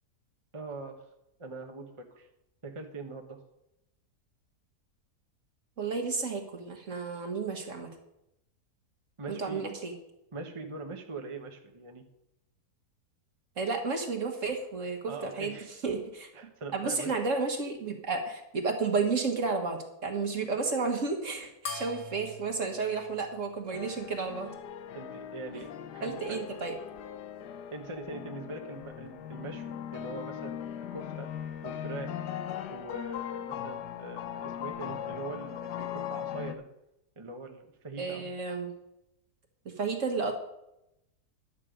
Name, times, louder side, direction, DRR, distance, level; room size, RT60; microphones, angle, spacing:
voice 1, 0.5-1.0 1.4-2.3 2.6-3.4 9.2-9.7 10.3-12.0 15.1-15.7 16.3-17.1 24.9-26.4 27.7-31.3 31.6-32.2 32.7-36.7 37.2-38.3, right 3 dB, 20° right, 3 dB, 1.0 m, -42 dB
voice 2, 5.8-7.9 9.3-9.9 13.6-15.6 15.8-16.3 16.7-24.5 26.0-26.8 38.0-38.7 39.6-40.3, right 4 dB, 50° right, 3 dB, 1.6 m, -32 dB
sound 1, 21.6-24.4, left 2 dB, 60° left, 2.2 m, -43 dB
sound 2, 23.7-36.6, left 10 dB, 80° left, 1.3 m, -39 dB
11.0 x 8.4 x 5.0 m, 0.87 s
omnidirectional pair, 1.7 m